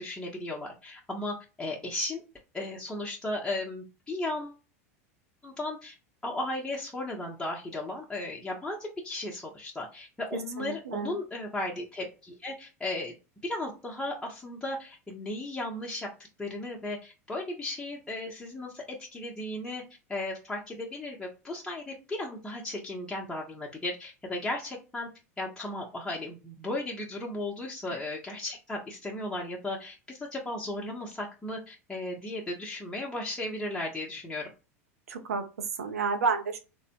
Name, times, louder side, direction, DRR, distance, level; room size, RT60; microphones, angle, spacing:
voice 1, 0.0-2.2 2.5-4.6 5.4-6.0 6.2-13.1 13.4-16.1 16.4-19.8 20.1-25.1 25.4-34.5, left 2 dB, 10° left, -3 dB, 0.8 m, -35 dB
voice 2, 10.6-11.2 27.9-28.0 35.1-36.6, right 5 dB, 90° right, 6 dB, 0.6 m, -31 dB
3.4 x 2.1 x 2.8 m, 0.30 s
hypercardioid pair, 100°, 8 cm